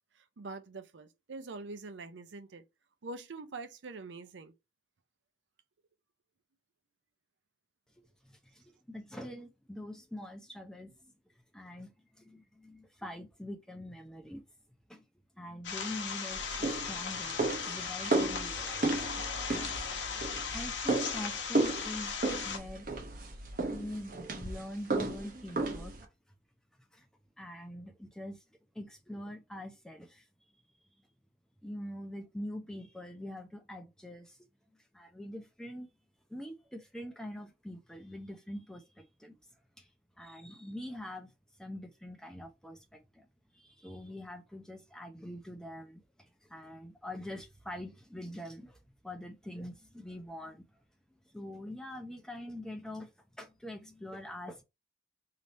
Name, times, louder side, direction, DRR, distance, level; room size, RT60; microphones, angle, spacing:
voice 1, 0.2-2.6 3.0-4.5, right 3 dB, 85° right, 0.6 m, -44 dB
voice 2, 8.2-11.1 11.5-14.4 14.9-15.1 15.3-19.3 20.5-22.9 23.7-26.0 26.9-27.1 27.4-28.4 28.7-30.3 31.6-34.4 34.9-35.9 36.3-39.4 39.8-39.9 40.2-41.3 41.6-43.3 43.5-48.8 49.0-50.7 51.1-54.6, left 1 dB, 5° left, 0.6 m, -44 dB
sound 1, 15.6-22.6, left 6 dB, 90° left, 1.0 m, -37 dB
sound 2, 16.3-26.1, right 2 dB, 45° right, 0.8 m, -34 dB
3.4 x 2.8 x 4.1 m
head